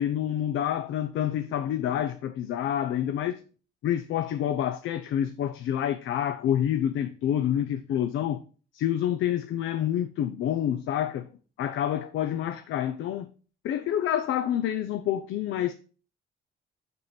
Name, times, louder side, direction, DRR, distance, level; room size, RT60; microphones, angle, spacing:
voice 1, 0.0-3.4 3.8-8.4 8.7-11.3 11.6-13.3 13.6-15.7, left 10 dB, 80° left, 0.7 m, -28 dB
6.8 x 6.2 x 5.1 m
cardioid pair, 90°, 20 cm